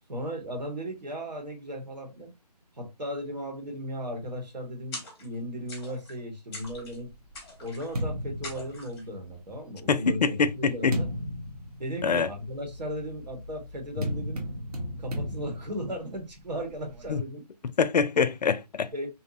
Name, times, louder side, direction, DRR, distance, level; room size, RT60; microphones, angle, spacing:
voice 1, 0.1-2.3 2.8-7.1 7.6-11.1 11.8-14.5 15.0-17.4 18.9-19.1, equal, 80° right, 1.2 m, -36 dB
sound 1, 4.9-5.4 5.7-6.2 6.5-7.0 7.3-8.0 8.4-9.1, left 2 dB, 10° left, 0.7 m, -43 dB
sound 2, 6.8-9.4 10.2-17.2, equal, 65° right, 0.7 m, -36 dB
voice 2, 9.9-11.0 12.0-12.3 14.0-14.1 17.1-17.2 17.8-18.9, left 5 dB, 75° left, 0.4 m, -25 dB
2.7 x 2.0 x 2.5 m
figure-of-eight pair, 155°, 21 cm